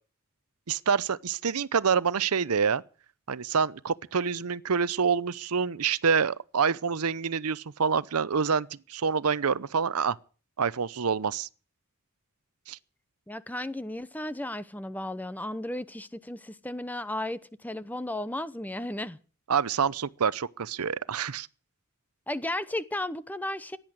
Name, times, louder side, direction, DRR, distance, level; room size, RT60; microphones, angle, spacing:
voice 1, 0.7-2.8 3.3-10.2 10.6-11.5 12.7-12.8 19.5-21.5, right 6 dB, 85° right, 0.7 m, -27 dB
voice 2, 13.3-19.2 22.3-23.8, left 1 dB, 5° left, 0.8 m, -34 dB
16.5 x 10.5 x 7.9 m
head